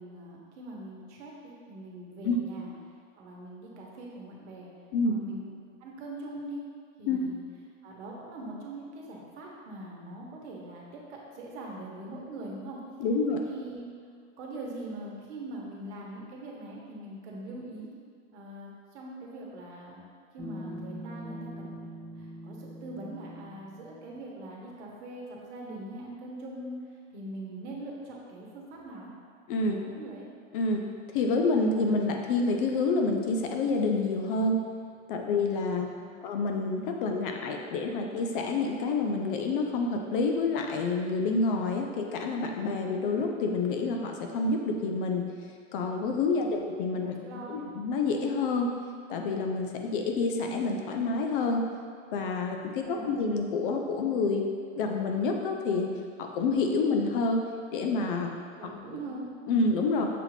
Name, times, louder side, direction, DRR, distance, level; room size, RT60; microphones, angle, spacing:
voice 1, 0.0-2.7 3.2-4.7 5.0-5.5 5.8-6.6 7.0-7.4 7.8-12.8 13.3-13.9 14.4-17.9 18.3-20.0 20.3-29.1 29.6-30.3 35.7-36.2 46.3-46.7 47.2-47.6 52.7-53.2 58.5-59.3, right 1 dB, 60° right, -2 dB, 1.1 m, -42 dB
voice 2, 13.0-13.4 29.5-29.8 30.5-30.8 31.1-34.6 35.1-35.9 36.2-45.3 45.7-48.7 49.1-51.6 52.1-54.4 54.8-55.9 56.2-57.4 57.7-58.3 59.5-60.1, left 3 dB, 45° left, 3 dB, 0.4 m, -28 dB
sound 1, 20.4-24.2, equal, 15° right, 0.7 m, -43 dB
6.6 x 2.4 x 3.2 m, 2.1 s
hypercardioid pair, 135°, 39 cm